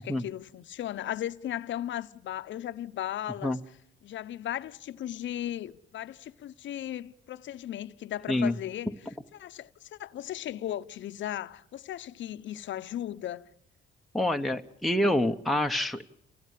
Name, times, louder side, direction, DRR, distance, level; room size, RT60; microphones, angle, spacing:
voice 1, 0.0-3.6 4.0-8.9 9.3-13.5, left 12 dB, 70° left, 0.9 m, -36 dB
voice 2, 14.1-16.0, left 1 dB, ahead, 1.2 m, -26 dB
28.0 x 17.5 x 8.4 m
cardioid pair, 90°, 20 cm